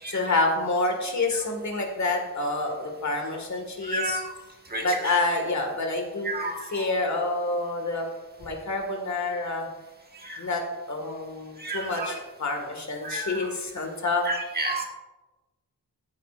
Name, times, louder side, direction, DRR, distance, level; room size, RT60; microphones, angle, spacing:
voice 1, 0.1-4.2 4.8-6.3 6.7-8.1 8.4-9.7 10.4-10.6 10.9-14.3, left 2 dB, 50° left, 3 dB, 1.9 m, -28 dB
voice 2, 3.8-4.3 4.7-5.2 6.2-6.9 10.1-10.4 11.6-12.2 13.0-13.5 14.2-14.8, right 2 dB, 25° right, 0 dB, 1.5 m, -31 dB
15.0 x 8.6 x 2.5 m, 1.1 s
wide cardioid pair, 160°, 35 cm